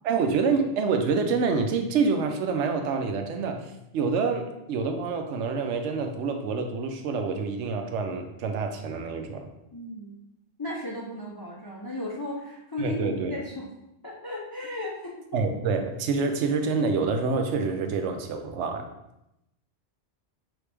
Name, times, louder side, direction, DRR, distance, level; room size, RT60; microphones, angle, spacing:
voice 1, 0.0-9.5 12.8-13.4 15.3-18.9, right 4 dB, 80° right, 5 dB, 0.9 m, -27 dB
voice 2, 9.7-10.1 10.6-13.7 14.0-15.4 16.1-16.2, left 1 dB, 35° left, -3 dB, 0.3 m, -35 dB
3.9 x 3.1 x 3.3 m, 0.86 s
omnidirectional pair, 1.2 m